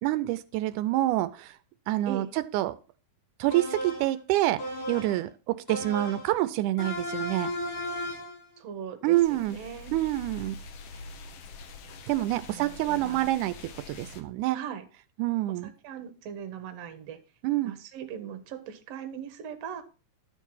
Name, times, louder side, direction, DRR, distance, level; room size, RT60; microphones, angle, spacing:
voice 1, 0.0-1.6 1.9-2.3 2.5-2.7 3.4-4.6 4.9-7.5 9.0-9.6 9.9-10.6 12.1-13.6 13.9-14.6 15.2-15.7 17.4-17.7, right 15 dB, 90° right, 13 dB, 2.1 m, -27 dB
sound 1, 3.5-4.2 4.6-5.2 5.7-6.3 6.8-8.4, equal, 80° left, 7.3 m, -35 dB
voice 2, 8.6-10.0 12.5-13.3 14.5-14.9 15.6-17.2 17.6-19.8, right 8 dB, 65° right, 9 dB, 2.1 m, -40 dB
sound 2, 9.1-14.2, left 3 dB, 65° left, 1.8 m, -45 dB
12.0 x 4.6 x 5.6 m, 0.34 s
omnidirectional pair, 3.5 m